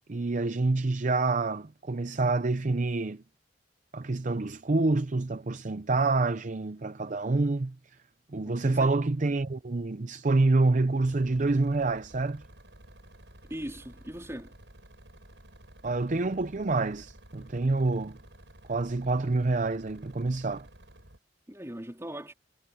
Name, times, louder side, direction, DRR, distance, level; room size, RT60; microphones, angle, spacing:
voice 1, 0.1-3.2 3.9-7.8 8.3-12.4 15.8-18.2 18.7-20.7, right 3 dB, 45° right, 0.6 m, -27 dB
voice 2, 8.4-8.9 13.5-14.5 21.5-22.3, equal, 15° right, 3.9 m, -39 dB
sound 1, 11.0-21.2, right 1 dB, 75° right, 8.0 m, -53 dB
head